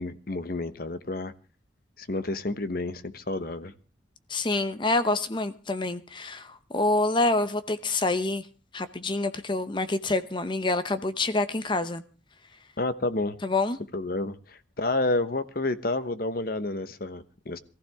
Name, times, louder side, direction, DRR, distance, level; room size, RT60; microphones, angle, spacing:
voice 1, 0.0-1.3 2.0-3.7 12.8-13.4 13.9-17.6, left 2 dB, 55° left, 1.1 m, -30 dB
voice 2, 4.3-8.5 8.7-12.0 13.4-13.8, left 2 dB, 25° left, 0.8 m, -27 dB
22.5 x 15.0 x 3.6 m
head